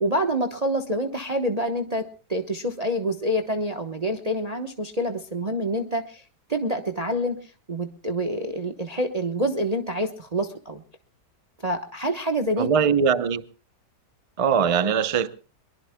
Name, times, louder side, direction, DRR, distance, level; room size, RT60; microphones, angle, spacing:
voice 1, 0.0-6.2 6.5-10.8 11.6-12.7, equal, 25° right, 1.0 m, -27 dB
voice 2, 12.6-13.4 14.4-15.3, right 7 dB, 45° right, 0.4 m, -21 dB
23.0 x 22.0 x 2.2 m
omnidirectional pair, 1.8 m